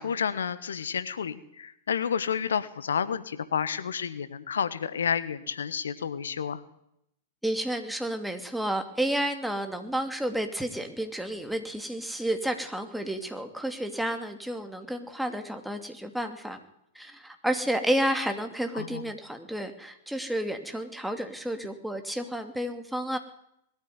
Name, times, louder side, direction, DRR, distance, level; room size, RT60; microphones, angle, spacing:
voice 1, 0.0-6.6 18.7-19.0, left 7 dB, 70° left, 15 dB, 1.3 m, -30 dB
voice 2, 7.4-16.6 16.9-23.2, right 1 dB, ahead, 6 dB, 2.8 m, -31 dB
20.5 x 13.5 x 9.6 m, 0.78 s
figure-of-eight pair, 100°, 0 cm